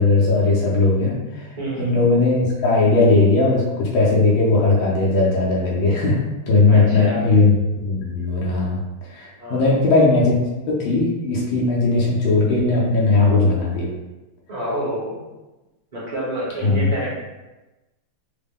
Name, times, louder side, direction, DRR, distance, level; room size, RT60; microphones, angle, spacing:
voice 1, 0.0-1.5 1.8-6.2 6.5-8.8 9.1-13.9 16.6-16.9, left 3 dB, 80° left, -4 dB, 1.6 m, -18 dB
voice 2, 1.6-2.0 6.7-7.2 9.4-9.7 14.5-15.3 15.9-17.2, right 1 dB, 25° right, -7 dB, 1.0 m, -28 dB
4.1 x 2.2 x 3.5 m, 1.1 s
omnidirectional pair, 2.1 m